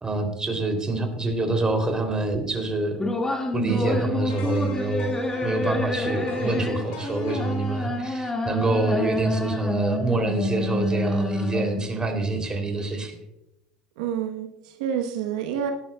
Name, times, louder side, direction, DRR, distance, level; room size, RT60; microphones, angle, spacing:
voice 1, 0.0-3.0 3.5-13.2, right 2 dB, 20° right, 4 dB, 2.9 m, -26 dB
sound 1, 3.0-12.0, left 2 dB, 15° left, 1.9 m, -28 dB
sound 2, 4.2-10.3 10.6-10.8, left 2 dB, 70° left, 5.0 m, -42 dB
voice 2, 8.0-8.5 14.0-15.7, right 9 dB, 80° right, 4 dB, 1.0 m, -29 dB
18.5 x 11.0 x 2.3 m, 0.88 s
supercardioid pair, 95°, 4 cm